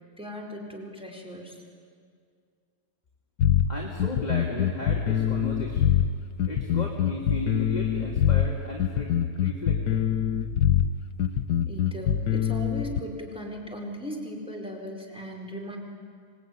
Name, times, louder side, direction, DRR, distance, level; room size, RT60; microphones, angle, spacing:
voice 1, 0.2-1.6 11.7-15.8, equal, 5° right, 0 dB, 4.9 m, -38 dB
sound 1, 3.4-13.0, left 9 dB, 90° left, 1.4 m, -24 dB
voice 2, 3.7-6.0 6.4-10.0, left 2 dB, 25° left, -2 dB, 2.8 m, -35 dB
26.5 x 20.0 x 9.6 m, 2.1 s
omnidirectional pair, 1.7 m